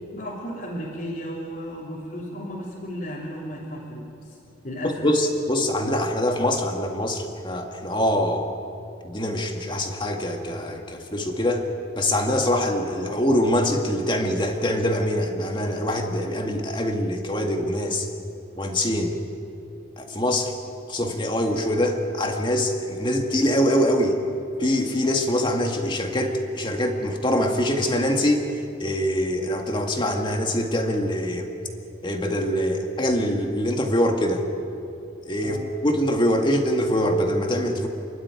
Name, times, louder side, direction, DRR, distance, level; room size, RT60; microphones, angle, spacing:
voice 1, 0.1-4.4 4.6-5.3 35.4-35.7, equal, 45° left, -7 dB, 3.5 m, -34 dB
voice 2, 4.8-8.5 9.0-11.6 12.0-18.1 18.6-19.2 20.0-20.5 20.9-24.2 24.6-28.4 28.8-31.5 32.0-34.4 35.3-35.6 35.8-37.9, left 1 dB, 25° left, 3 dB, 2.0 m, -24 dB
29.0 x 12.5 x 9.7 m, 2.9 s
head